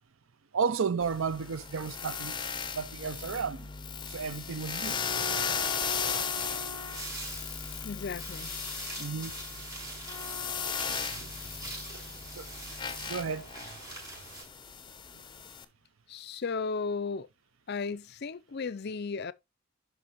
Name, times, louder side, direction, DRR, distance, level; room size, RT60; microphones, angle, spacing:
voice 1, 0.5-2.4 2.7-3.7 4.1-5.0 9.0-9.4 12.3-12.5 13.1-13.5, right 5 dB, 60° right, 0.5 m, -32 dB
sound 1, 1.0-15.6, left 6 dB, 20° left, 0.7 m, -36 dB
sound 2, 6.3-14.4, right 2 dB, 15° right, 5.3 m, -43 dB
voice 2, 7.8-8.5 16.1-17.3 17.7-19.3, left 4 dB, 45° left, 0.5 m, -35 dB
11.0 x 5.0 x 3.0 m
head